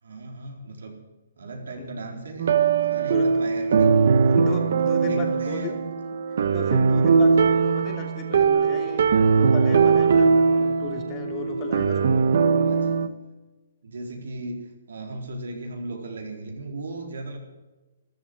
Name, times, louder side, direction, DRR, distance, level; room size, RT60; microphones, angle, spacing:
voice 1, 0.0-0.9 1.4-2.5 2.8-4.0 4.4-4.6 5.0-5.8 12.6-13.0 13.8-17.4, right 2 dB, 85° right, 2 dB, 4.3 m, -36 dB
sound 1, 2.4-13.1, right 5 dB, 65° right, 1.1 m, -20 dB
voice 2, 4.3-5.7 6.1-6.2 6.5-9.1 9.3-12.4, left 5 dB, 25° left, 3 dB, 2.8 m, -35 dB
13.5 x 12.5 x 8.0 m, 1.1 s
hypercardioid pair, 155°, 0 cm